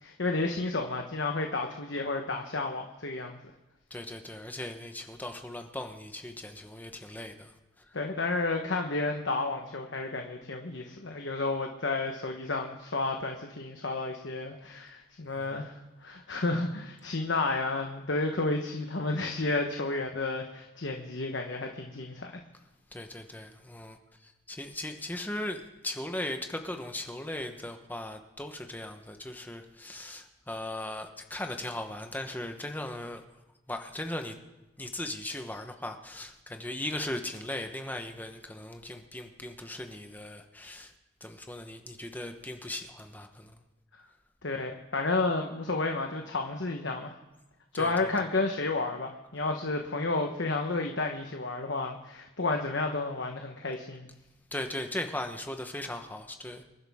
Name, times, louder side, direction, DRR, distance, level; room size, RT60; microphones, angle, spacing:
voice 1, 0.0-3.4 7.9-15.7 16.0-22.3 44.4-47.1 47.7-54.1, left 3 dB, 65° left, 3 dB, 1.2 m, -31 dB
voice 2, 3.9-7.5 15.3-15.5 22.9-24.0 24.5-33.2 33.7-34.4 34.8-40.9 41.2-43.5 47.7-48.1 54.5-56.6, left 1 dB, 10° left, 5 dB, 1.0 m, -38 dB
26.0 x 11.5 x 3.6 m, 1.0 s
head